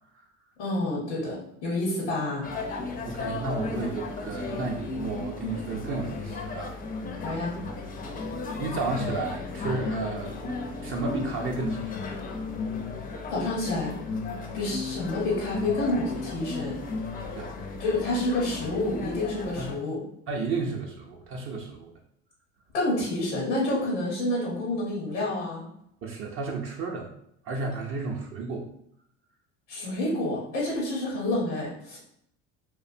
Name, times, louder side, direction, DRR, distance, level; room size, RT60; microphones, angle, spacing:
voice 1, 0.6-2.5 7.2-7.5 13.3-13.9 14.5-16.8 17.8-20.0 22.7-25.6 29.7-32.0, left 2 dB, 85° left, -4 dB, 0.9 m, -28 dB
sound 1, 2.4-19.7, left 3 dB, 25° left, 0.4 m, -35 dB
voice 2, 3.0-6.7 8.6-10.4 10.8-11.9 17.4-17.6 19.6-19.7 20.3-21.9 26.0-27.1 27.5-28.7, right 3 dB, 40° right, 1 dB, 0.5 m, -32 dB
2.6 x 2.1 x 2.6 m, 0.73 s
supercardioid pair, 95°, 34 cm